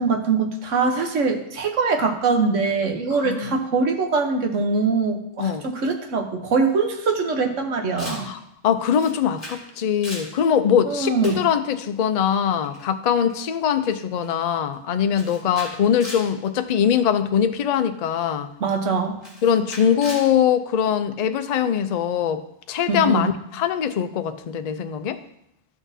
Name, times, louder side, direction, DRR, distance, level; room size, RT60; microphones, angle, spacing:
voice 1, 0.0-8.3 10.9-11.4 18.6-19.2 22.9-23.3, right 4 dB, 75° right, 4 dB, 1.3 m, -23 dB
voice 2, 3.1-3.5 5.4-5.6 8.1-18.5 19.4-22.4 22.7-25.2, left 8 dB, 70° left, 9 dB, 0.4 m, -22 dB
Camera, 8.0-8.3 8.9-9.7 9.9-10.3 11.2-11.5 12.6-12.8 13.3-13.4 13.8-13.9 14.2-14.5 15.1-16.3 16.9-17.2 18.2-18.3 19.2-20.3, left 1 dB, 30° left, 2.3 m, -38 dB
12.5 x 6.1 x 2.7 m, 0.79 s
omnidirectional pair, 1.3 m